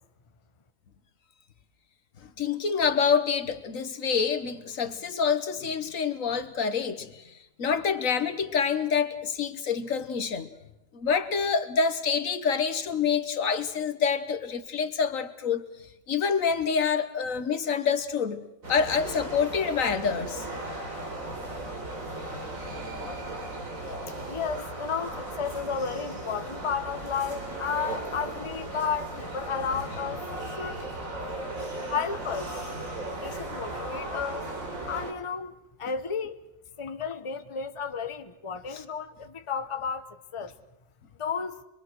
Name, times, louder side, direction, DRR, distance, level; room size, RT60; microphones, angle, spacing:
voice 1, 2.4-7.3 7.6-10.5 10.9-15.6 16.1-18.4 18.7-20.5 38.7-38.8, left 6 dB, 75° left, 1.6 m, -27 dB
sound 1, 18.6-35.1, right 2 dB, 85° right, 3.9 m, -36 dB
voice 2, 24.3-30.8 31.9-32.5 33.2-34.5 34.9-35.5 35.8-36.4 36.8-40.0 40.3-40.5 41.2-41.6, left 6 dB, 25° left, 0.9 m, -32 dB
25.5 x 22.0 x 6.4 m
omnidirectional pair, 1.4 m